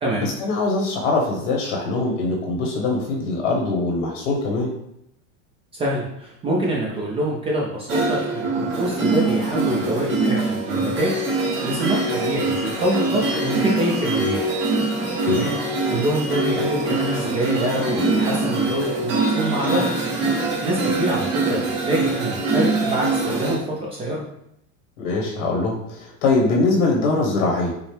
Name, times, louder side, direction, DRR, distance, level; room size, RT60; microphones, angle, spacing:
voice 1, 0.2-4.7 15.2-15.4 25.0-27.7, left 3 dB, 85° left, -1 dB, 1.2 m, -22 dB
voice 2, 5.7-14.4 15.2-15.5 15.9-19.8 20.4-24.2, right 1 dB, 15° right, -4 dB, 0.3 m, -25 dB
sound 1, 7.9-23.6, right 2 dB, 30° right, 1.0 m, -23 dB
5.1 x 2.0 x 3.2 m, 0.77 s
supercardioid pair, 150°, 37 cm